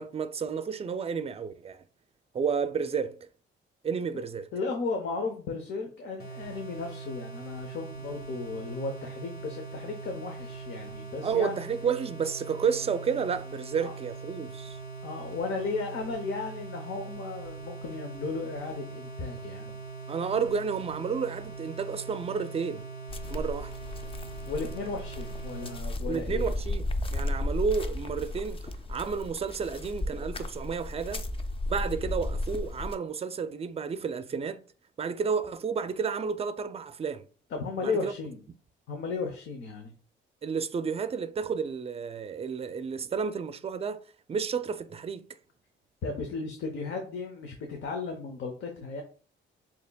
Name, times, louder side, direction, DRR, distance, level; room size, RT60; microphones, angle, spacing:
voice 1, 0.0-1.8 2.3-3.3 3.8-4.5 11.2-14.8 20.1-22.9 23.3-23.7 26.1-31.3 31.7-34.7 35.0-37.2 37.8-38.1 40.4-44.0 44.3-45.3, right 6 dB, 30° right, 0.4 m, -31 dB
voice 2, 4.5-11.6 13.8-13.9 15.0-19.8 24.5-26.5 37.5-38.4 38.9-39.9 46.0-49.0, left 4 dB, 70° left, 0.9 m, -35 dB
sound 1, 6.2-25.8, right 4 dB, 55° left, 1.8 m, -42 dB
sound 2, 23.1-32.9, left 1 dB, 25° left, 0.5 m, -34 dB
6.6 x 2.9 x 2.3 m
cardioid pair, 90°, 20 cm